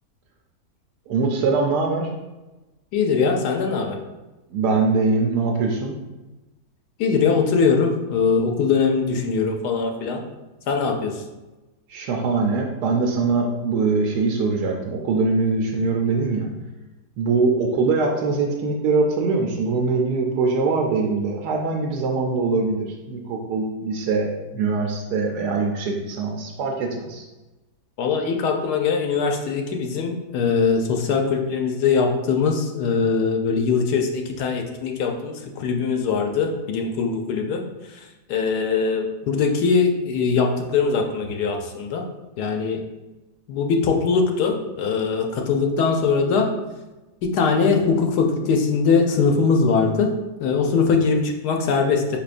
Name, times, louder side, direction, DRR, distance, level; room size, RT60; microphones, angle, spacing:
voice 1, 1.1-2.1 4.5-5.9 11.9-16.5 17.2-24.3 24.5-27.2, right 4 dB, 75° right, 1 dB, 1.1 m, -22 dB
voice 2, 2.9-4.0 7.0-10.2 10.7-11.1 28.0-37.7 38.3-42.1 42.4-42.8 43.5-46.5 47.2-50.1 50.4-52.2, left 5 dB, 80° left, 3 dB, 1.1 m, -21 dB
5.6 x 3.4 x 2.4 m, 1.1 s
omnidirectional pair, 1.8 m